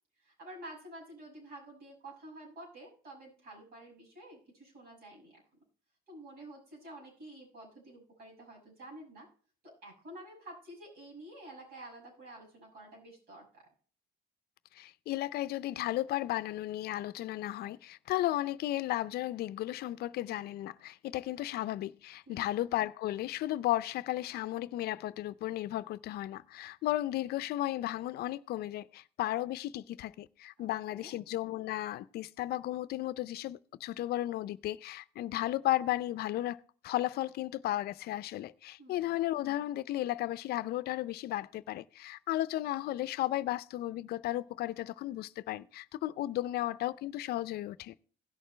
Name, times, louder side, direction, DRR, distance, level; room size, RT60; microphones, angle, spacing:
voice 1, 0.2-5.4 6.1-9.3 9.6-13.7 22.3-22.5 30.6-31.1 38.8-39.2, right 1 dB, 65° right, 6.3 m, -50 dB
voice 2, 14.7-47.9, left 15 dB, 70° left, 0.5 m, -34 dB
16.5 x 6.6 x 3.2 m
cardioid pair, 110°, 17 cm